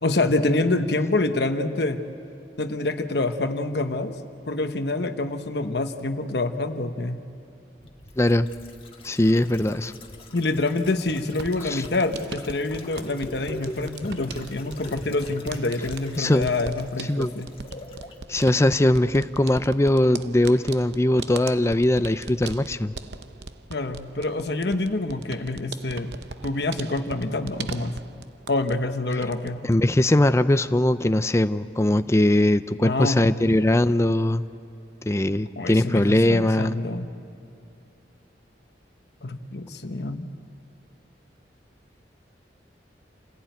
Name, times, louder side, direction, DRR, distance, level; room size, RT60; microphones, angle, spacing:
voice 1, 0.0-2.0 2.6-4.2 4.5-7.2 10.3-17.5 23.7-26.1 26.4-28.0 28.5-29.7 32.8-33.3 35.6-37.1 39.2-40.3, left 2 dB, 70° left, 7 dB, 1.0 m, -26 dB
sound 1, 7.8-18.2 18.5-18.6, left 1 dB, 30° left, 1.6 m, -42 dB
voice 2, 8.2-8.5 9.0-9.9 11.6-11.8 16.2-16.5 17.1-17.3 18.3-22.9 29.6-34.5 35.1-36.8, left 1 dB, 15° left, 12 dB, 0.5 m, -21 dB
sound 2, 11.3-28.9 29.1-29.8, right 4 dB, 70° right, 0.8 m, -40 dB
28.0 x 16.0 x 9.2 m, 2.7 s
head